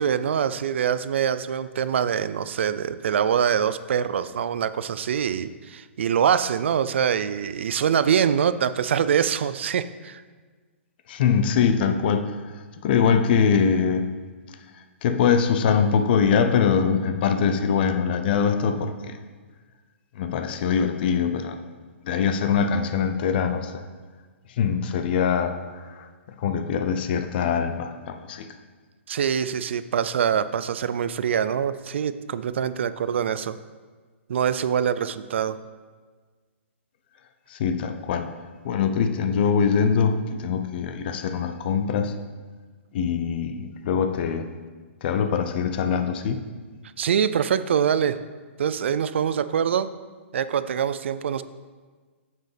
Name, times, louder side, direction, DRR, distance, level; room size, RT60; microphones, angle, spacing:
voice 1, 0.0-10.2 29.1-33.6 34.3-35.6 47.0-48.2 48.6-49.9 50.3-51.4, right 8 dB, 65° right, 14 dB, 0.4 m, -24 dB
voice 2, 11.1-12.3 12.8-14.0 15.0-19.2 20.2-21.6 22.1-23.8 24.6-26.1 26.4-28.5 37.5-38.3 38.6-42.1 42.9-44.5 45.0-46.4, left 6 dB, 50° left, 8 dB, 0.7 m, -23 dB
9.1 x 7.3 x 3.3 m, 1.5 s
hypercardioid pair, 125°, 7 cm